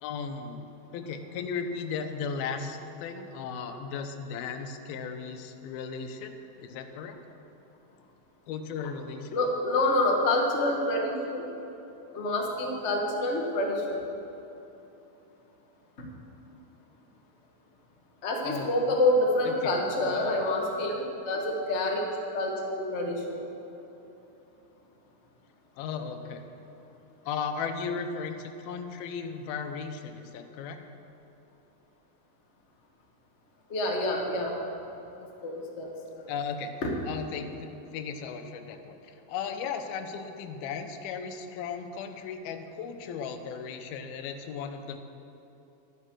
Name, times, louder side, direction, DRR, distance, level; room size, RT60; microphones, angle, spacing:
voice 1, 0.0-0.7 0.9-7.2 8.5-9.4 18.4-18.9 19.4-20.4 25.8-26.4 27.3-30.8 36.3-36.7 37.1-45.0, left 6 dB, 90° left, 7 dB, 2.7 m, -36 dB
voice 2, 9.3-11.4 12.1-14.0 16.0-16.1 18.2-23.4 33.7-34.5 35.4-36.3 36.8-36.9, left 1 dB, 55° left, 0 dB, 0.7 m, -27 dB
12.0 x 11.0 x 6.2 m, 3.0 s
omnidirectional pair, 4.2 m